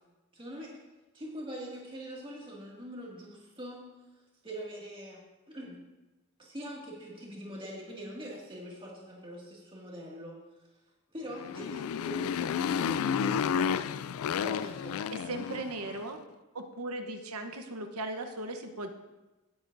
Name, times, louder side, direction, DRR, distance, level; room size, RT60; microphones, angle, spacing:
voice 1, 0.3-0.8 1.1-3.9 4.4-5.8 6.4-10.4 11.1-13.9 14.4-15.0, equal, 25° right, -3 dB, 2.1 m, -43 dB
Motorcycle, 11.3-15.9, left 7 dB, 70° left, 0.3 m, -31 dB
voice 2, 15.1-16.2 16.5-18.9, right 2 dB, 80° right, 5 dB, 1.0 m, -38 dB
17.5 x 8.2 x 2.6 m, 1.1 s
head